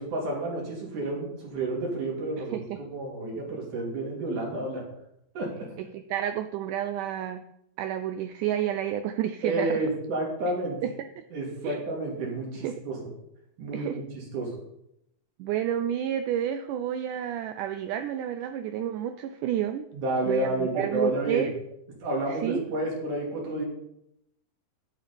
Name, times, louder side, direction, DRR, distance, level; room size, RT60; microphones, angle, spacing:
voice 1, 0.0-4.8 5.4-5.7 9.4-10.8 11.3-13.0 13.6-14.5 19.9-21.5 22.0-23.6, right 2 dB, 65° right, -2 dB, 3.9 m, -30 dB
voice 2, 5.9-7.4 7.8-9.8 10.8-10.9 11.2-11.3 11.6-11.8 12.6-12.8 13.7-14.0 15.4-19.9 20.3-21.5 22.3-22.6, right 10 dB, 80° right, 9 dB, 1.9 m, -30 dB
10.5 x 6.8 x 5.2 m, 0.79 s
omnidirectional pair, 4.0 m